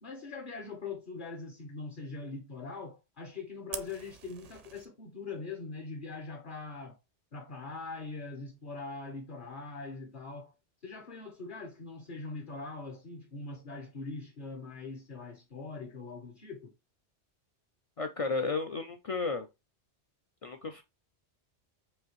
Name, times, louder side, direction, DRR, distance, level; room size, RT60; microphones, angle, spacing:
voice 1, 0.0-7.0 7.3-10.5 10.8-16.7, left 3 dB, 50° left, 0.9 m, -42 dB
Fire, 3.7-4.9, right 7 dB, 55° right, 0.4 m, -44 dB
voice 2, 18.0-19.5 20.4-20.8, left 4 dB, 65° left, 0.3 m, -33 dB
4.9 x 2.7 x 2.9 m
omnidirectional pair, 1.2 m